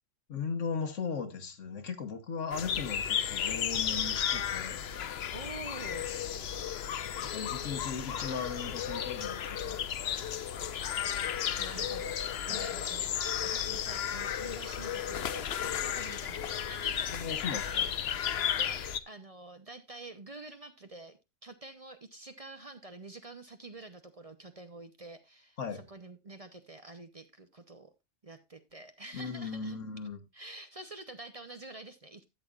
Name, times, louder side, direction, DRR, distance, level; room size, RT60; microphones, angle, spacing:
voice 1, 0.3-4.8 7.2-9.8 12.5-12.7 17.1-17.9 25.6-25.9 29.1-30.2, left 5 dB, 80° left, 1.5 m, -37 dB
sound 1, 2.5-19.0, left 9 dB, 60° left, 0.9 m, -34 dB
voice 2, 5.3-6.7 11.2-17.2 17.6-27.9 28.2-29.8 30.3-32.2, right 2 dB, 35° right, 0.8 m, -48 dB
13.0 x 8.2 x 2.4 m
omnidirectional pair, 1.3 m